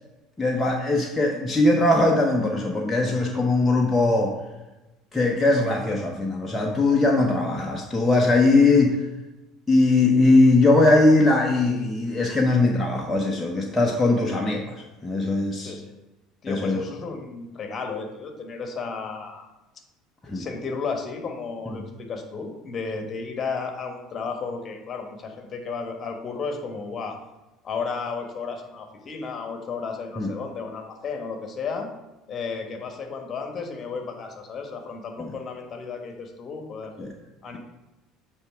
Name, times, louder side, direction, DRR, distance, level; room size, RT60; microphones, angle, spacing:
voice 1, 0.4-4.3 5.1-9.0 9.7-14.6 15.0-15.7 16.5-16.8 20.3-20.4 30.2-30.3 35.2-35.3 37.0-37.1, left 2 dB, 15° left, -1 dB, 1.0 m, -20 dB
voice 2, 16.4-19.5 20.3-27.2 27.6-31.9 32.3-36.9 37.4-37.6, left 5 dB, 35° left, 3 dB, 1.4 m, -33 dB
8.6 x 3.6 x 4.7 m, 1.0 s
figure-of-eight pair, 65°, 0 cm